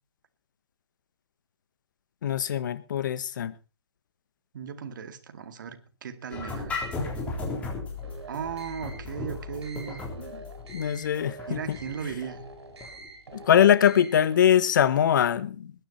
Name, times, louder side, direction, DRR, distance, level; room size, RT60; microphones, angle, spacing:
voice 1, 2.2-3.5 10.7-11.8 13.3-15.7, left 9 dB, 45° left, 1.4 m, -22 dB
voice 2, 4.5-6.8 8.3-10.0 11.5-12.4, right 7 dB, 45° right, 2.1 m, -36 dB
sound 1, 6.3-13.1, left 3 dB, 10° left, 3.5 m, -36 dB
sound 2, 8.0-14.4, right 2 dB, 70° right, 7.2 m, -46 dB
21.0 x 10.0 x 4.3 m
hypercardioid pair, 160°, 14 cm